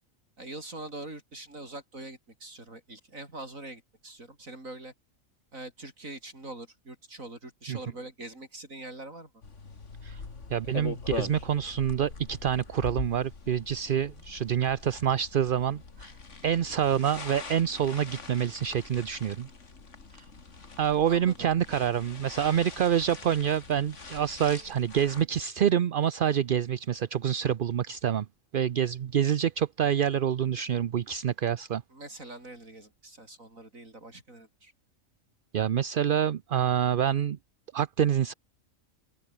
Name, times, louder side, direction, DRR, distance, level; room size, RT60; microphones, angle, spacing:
voice 1, 0.4-4.9 5.5-9.3 21.1-21.5 31.9-34.7, right 2 dB, 75° right, 6.7 m, -43 dB
sound 1, 9.4-25.2, left 4 dB, 60° left, 2.7 m, -42 dB
voice 2, 10.5-16.1 16.4-19.5 20.1-20.2 20.8-28.3 28.5-31.8 35.5-37.4 37.7-38.3, right 9 dB, 50° right, 0.7 m, -27 dB
omnidirectional pair, 1.4 m